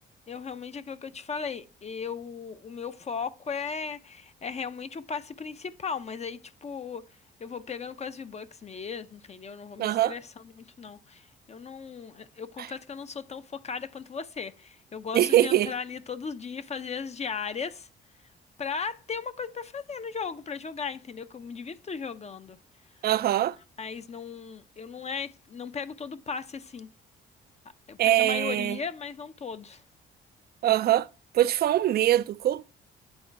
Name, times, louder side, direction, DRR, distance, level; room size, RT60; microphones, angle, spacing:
voice 1, 0.3-7.1 7.4-17.9 18.6-22.6 23.4-23.5 23.8-26.9 27.9-29.8, left 5 dB, 35° left, 0.5 m, -37 dB
voice 2, 9.8-10.1 15.1-15.7 23.0-23.6 28.0-28.8 30.6-31.1 31.3-32.7, right 13 dB, 50° right, 0.4 m, -23 dB
8.9 x 3.9 x 4.5 m
cardioid pair, 90°, 20 cm